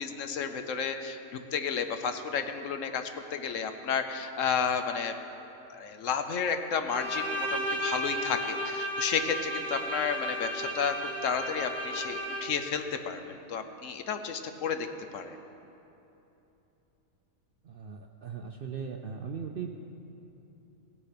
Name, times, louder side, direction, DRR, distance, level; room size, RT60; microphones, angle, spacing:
voice 1, 0.0-5.1 5.7-10.9 11.2-14.9 15.1-15.4, left 6 dB, 65° left, 8 dB, 1.0 m, -32 dB
Bowed string instrument, 6.9-12.7, equal, 10° right, 1.2 m, -34 dB
voice 2, 17.6-19.7, right 6 dB, 60° right, 4 dB, 0.6 m, -38 dB
17.5 x 6.9 x 5.8 m, 3.0 s
omnidirectional pair, 1.5 m